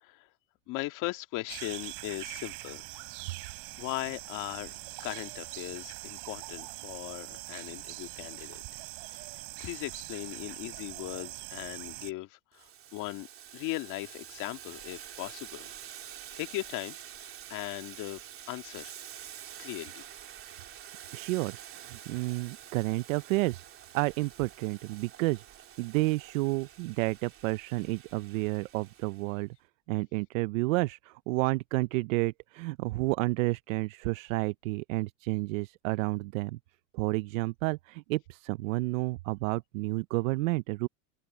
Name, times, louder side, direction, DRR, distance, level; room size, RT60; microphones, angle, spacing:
voice 1, 0.0-0.3 0.7-2.9 3.8-8.6 9.1-9.3 9.6-13.3 13.5-15.7 16.0-18.2 18.5-18.9 19.6-20.0, left 19 dB, 50° left, 2.1 m, -39 dB
sound 1, 1.5-12.1, right 25 dB, 60° right, 3.5 m, -43 dB
Boiling, 12.5-29.3, right 10 dB, 35° right, 3.3 m, -48 dB
voice 2, 21.1-23.6 23.9-25.4 25.8-29.5 29.9-36.6 36.9-40.9, right 21 dB, 75° right, 0.7 m, -30 dB
supercardioid pair, 130°, 39 cm